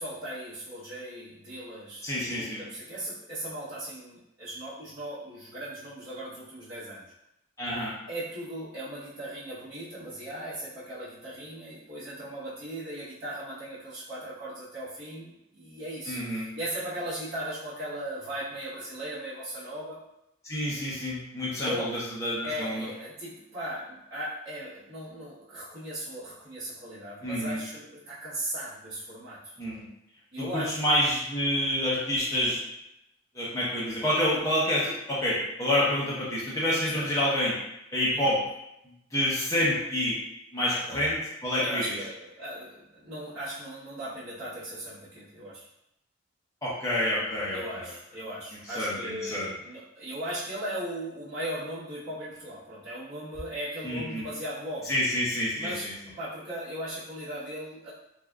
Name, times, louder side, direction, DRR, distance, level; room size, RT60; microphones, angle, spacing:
voice 1, 0.0-7.0 8.1-20.0 21.6-21.9 22.4-29.5 30.3-30.8 36.9-37.1 38.1-38.4 40.6-41.1 41.6-45.7 47.5-55.0 55.6-55.9 56.2-57.9, right 1 dB, 50° right, -15 dB, 1.0 m, -38 dB
voice 2, 2.0-2.6 7.6-7.9 16.1-16.5 20.4-22.9 27.2-27.6 29.6-29.9 30.4-32.6 33.3-37.6 37.9-38.4 39.1-40.2 40.5-41.2 41.4-42.0 46.6-47.8 48.8-49.5 53.8-54.2 54.9-55.9, left 1 dB, 15° left, -7 dB, 0.6 m, -28 dB
3.5 x 2.4 x 2.2 m, 0.86 s
head